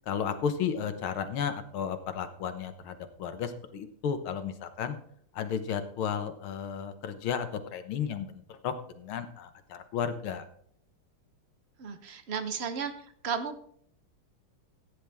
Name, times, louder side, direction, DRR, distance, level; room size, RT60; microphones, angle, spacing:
voice 1, 0.1-5.0 5.3-10.4, left 7 dB, 75° left, 9 dB, 1.9 m, -33 dB
voice 2, 11.8-12.9 13.2-13.6, right 6 dB, 70° right, 9 dB, 0.6 m, -33 dB
15.0 x 9.5 x 3.5 m, 0.64 s
omnidirectional pair, 2.3 m